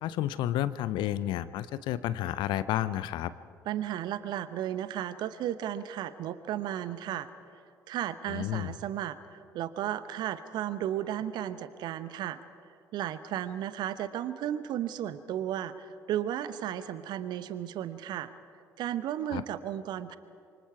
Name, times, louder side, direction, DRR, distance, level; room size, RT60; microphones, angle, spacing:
voice 1, 0.0-3.3 8.3-8.7 19.3-19.4, left 13 dB, 55° left, 16 dB, 0.7 m, -31 dB
voice 2, 3.7-7.3 7.9-12.4 12.9-18.3 18.8-20.2, right 11 dB, 55° right, 14 dB, 0.8 m, -34 dB
27.5 x 24.5 x 4.7 m, 2.3 s
figure-of-eight pair, 50°, 9 cm